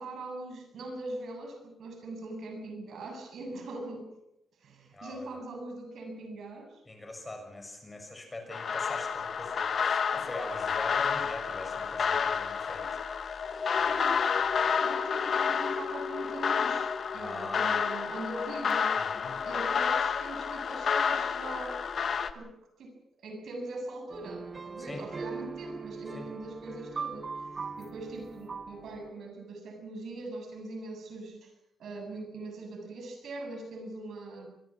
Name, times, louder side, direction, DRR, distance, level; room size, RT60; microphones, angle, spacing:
voice 1, 0.0-4.1 4.6-6.8 13.9-14.3 14.8-19.0 19.4-21.8 22.3-22.5 22.8-27.3 27.5-31.5 31.8-34.5, right 2 dB, 70° right, 4 dB, 7.7 m, -41 dB
voice 2, 4.9-5.4 6.9-12.9 13.2-13.4 17.1-17.9 19.0-19.4 24.8-25.0 26.1-26.3, left 2 dB, 15° left, 4 dB, 6.4 m, -43 dB
sound 1, 8.5-22.3, left 6 dB, 55° left, 1.4 m, -30 dB
sound 2, 24.1-29.1, right 4 dB, 30° right, 1.0 m, -40 dB
24.5 x 23.0 x 6.1 m, 0.81 s
cardioid pair, 130°, 0 cm